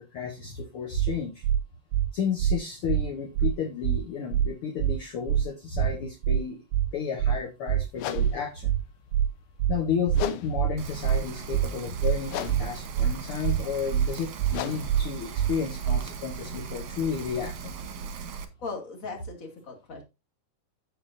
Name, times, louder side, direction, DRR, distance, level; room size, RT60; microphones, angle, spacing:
voice 1, 0.0-1.4 2.1-6.6 6.9-8.7 9.7-17.7, left 6 dB, 60° left, 3 dB, 1.5 m, -32 dB
sound 1, 1.0-1.1 1.4-1.6 1.9-2.1 2.4-2.6 2.9-3.0 3.4-3.5 3.8-4.0 4.3-4.5 4.8-5.0 5.3-5.4 5.8-5.9 6.2-6.4 6.7-6.9 7.2-7.4 7.7-7.8 8.2-8.3 8.6-8.8 9.1-9.3 9.6-9.8 10.1-10.2 10.6-10.7 11.0-11.2 11.5-11.7 12.0-12.2 12.5-12.6 13.0-13.1 13.4-13.6 13.9-14.1 14.4-14.6 14.9-15.0 15.4-15.5 15.8-16.0, right 10 dB, 85° right, 2.3 m, -24 dB
sound 2, 7.9-16.7, left 11 dB, 90° left, 2.6 m, -41 dB
Rain, 10.8-18.4, right 6 dB, 55° right, 1.9 m, -39 dB
voice 2, 18.6-20.0, left 4 dB, 30° left, 2 dB, 2.1 m, -38 dB
15.5 x 5.4 x 2.6 m, 0.25 s
omnidirectional pair, 4.0 m